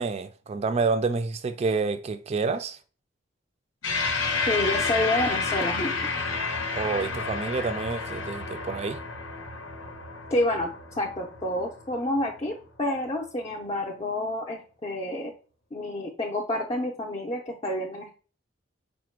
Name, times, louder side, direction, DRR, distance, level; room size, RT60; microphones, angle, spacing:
voice 1, 0.0-2.8 6.8-9.0, right 4 dB, 35° right, 0.3 m, -28 dB
sound 1, 3.8-12.5, left 4 dB, 90° left, 0.9 m, -30 dB
voice 2, 4.5-6.1 10.3-10.7 11.0-15.3 15.7-18.1, left 1 dB, 30° left, 0.6 m, -29 dB
4.9 x 2.1 x 4.4 m
head